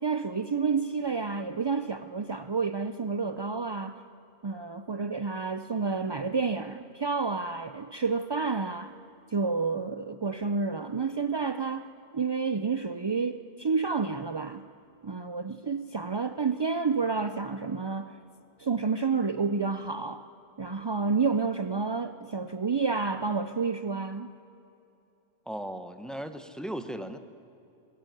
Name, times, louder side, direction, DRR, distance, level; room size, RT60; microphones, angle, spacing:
voice 1, 0.0-4.0 4.4-8.9 9.3-11.9 12.1-14.7 15.0-18.2 18.6-20.3 20.6-24.3, right 4 dB, 45° right, 10 dB, 0.3 m, -29 dB
voice 2, 25.5-27.2, right 1 dB, ahead, 9 dB, 0.9 m, -37 dB
19.0 x 16.0 x 9.3 m, 2.7 s
omnidirectional pair, 1.2 m